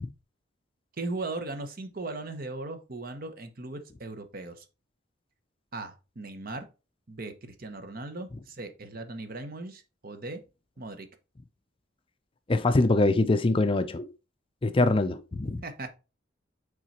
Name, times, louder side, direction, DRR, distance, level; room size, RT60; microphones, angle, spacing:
voice 1, 1.0-4.6 5.7-6.6 7.1-10.4 10.8-11.1 15.6-15.9, right 2 dB, 50° right, 0.9 m, -38 dB
voice 2, 12.5-14.1 14.6-15.6, left 2 dB, 30° left, 0.4 m, -23 dB
6.1 x 3.8 x 4.2 m
head